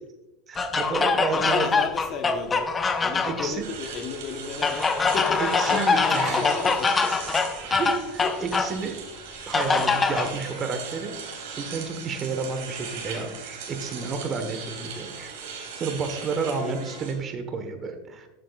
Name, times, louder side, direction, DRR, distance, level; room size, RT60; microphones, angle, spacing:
voice 1, 0.5-1.7 3.2-3.6 5.4-6.4 7.6-9.0 9.5-11.1 11.6-15.3 15.7-18.3, right 4 dB, 30° right, 7 dB, 1.2 m, -31 dB
sound 1, 0.6-3.5 4.6-8.8 9.5-10.3, left 4 dB, 20° left, 0.6 m, -24 dB
voice 2, 1.3-2.7 3.0-5.4 5.7-7.2 8.2-8.3 9.0-9.1 16.4-16.8, left 5 dB, 40° left, 6 dB, 1.1 m, -33 dB
sound 2, 3.6-17.1, right 5 dB, 70° right, 3.1 m, -38 dB
12.5 x 7.5 x 2.4 m, 1.0 s
supercardioid pair, 120°, 0 cm